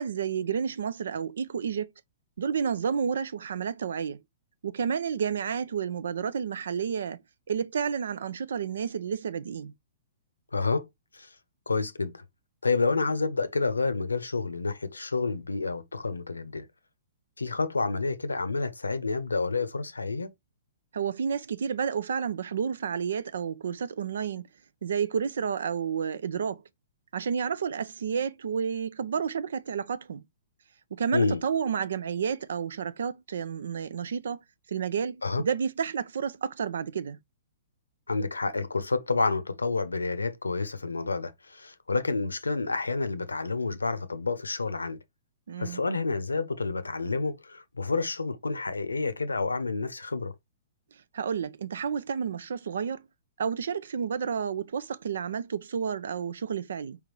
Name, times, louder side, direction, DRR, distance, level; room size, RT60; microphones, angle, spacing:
voice 1, 0.0-1.9 2.4-4.2 4.6-7.2 7.5-9.7 20.9-24.4 24.8-26.6 27.1-30.2 30.9-34.4 34.7-37.2 45.5-45.8 51.1-53.0 53.4-57.0, right 7 dB, 60° right, 0.4 m, -30 dB
voice 2, 10.5-10.9 11.1-11.3 11.7-12.2 12.6-16.6 17.4-20.3 31.1-31.4 35.2-35.4 38.1-45.0 45.6-50.3, left 3 dB, 75° left, 0.7 m, -29 dB
4.7 x 3.6 x 3.0 m
figure-of-eight pair, 115°, 0 cm